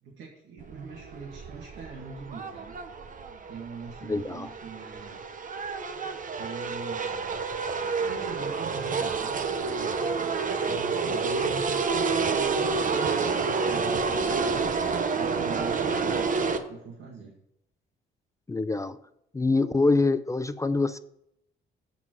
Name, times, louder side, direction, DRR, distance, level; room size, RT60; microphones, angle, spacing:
voice 1, 0.0-2.8 3.5-5.9 6.4-7.3 7.8-17.3, right 5 dB, 80° right, 2.0 m, -43 dB
sound 1, 0.6-16.6, right 4 dB, 40° right, 0.9 m, -29 dB
voice 2, 4.1-4.5 18.5-19.0 19.3-21.0, left 3 dB, 15° left, 0.4 m, -25 dB
7.2 x 6.0 x 6.1 m
cardioid pair, 90°, 20 cm